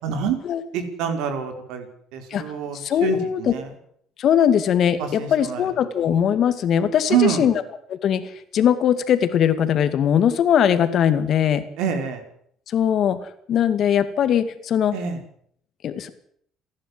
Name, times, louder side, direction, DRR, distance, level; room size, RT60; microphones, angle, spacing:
voice 1, 0.0-0.4 0.7-1.8 2.1-3.7 5.0-5.6 7.1-7.5 11.8-12.2 14.9-15.2, right 8 dB, 80° right, 6 dB, 4.7 m, -26 dB
voice 2, 2.7-3.5 4.2-7.5 7.9-8.2 8.5-11.6 12.7-13.2 13.5-15.0 15.8-16.1, left 9 dB, 55° left, 11 dB, 2.4 m, -20 dB
28.5 x 11.5 x 7.9 m, 0.64 s
cardioid pair, 105°, 0 cm